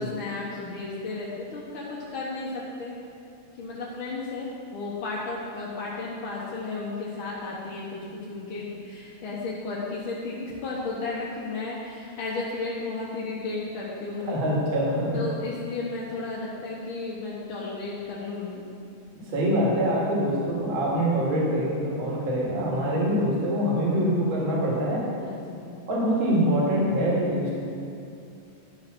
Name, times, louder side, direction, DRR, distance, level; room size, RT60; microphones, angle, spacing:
voice 1, 0.0-2.9 3.6-14.4 15.1-18.6 25.2-25.7, left 3 dB, 55° left, -6 dB, 1.7 m, -34 dB
voice 2, 14.2-15.2 19.3-25.0 25.9-27.5, equal, 45° right, -5 dB, 2.7 m, -24 dB
11.5 x 5.7 x 6.0 m, 2.6 s
omnidirectional pair, 3.3 m